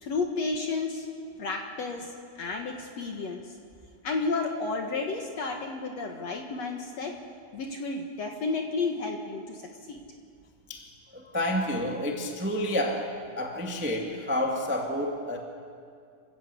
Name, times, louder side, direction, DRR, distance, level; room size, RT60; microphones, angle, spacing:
voice 1, 0.0-1.1 1.4-3.4 4.0-7.1 7.5-9.6 9.9-10.0, left 3 dB, 60° left, 3 dB, 1.9 m, -32 dB
voice 2, 11.1-13.1 13.4-15.4, left 1 dB, 5° right, 1 dB, 0.8 m, -29 dB
27.0 x 15.0 x 8.3 m, 2.3 s
omnidirectional pair, 4.3 m